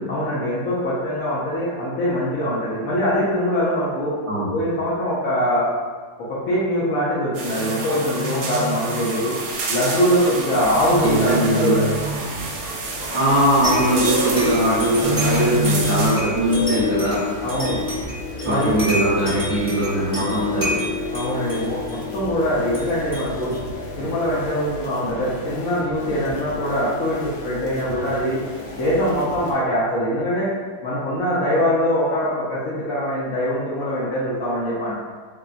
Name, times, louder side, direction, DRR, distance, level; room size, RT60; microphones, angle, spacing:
voice 1, 0.1-4.2 4.5-5.7 6.2-9.4 9.7-11.9 17.4-17.8 18.4-18.8 21.1-23.5 24.0-28.4 28.7-30.5 30.8-35.0, equal, 65° left, -8 dB, 0.9 m, -23 dB
sound 1, 7.3-16.1, right 2 dB, 75° right, 1.1 m, -27 dB
sound 2, 10.6-29.5, right 1 dB, 85° left, 1.3 m, -36 dB
voice 2, 11.0-11.8 13.1-17.2 18.4-20.9, right 1 dB, 40° right, -11 dB, 1.1 m, -20 dB
sound 3, 13.6-24.7, left 2 dB, 20° left, 0.9 m, -28 dB
3.7 x 2.2 x 2.4 m, 1.5 s
omnidirectional pair, 1.9 m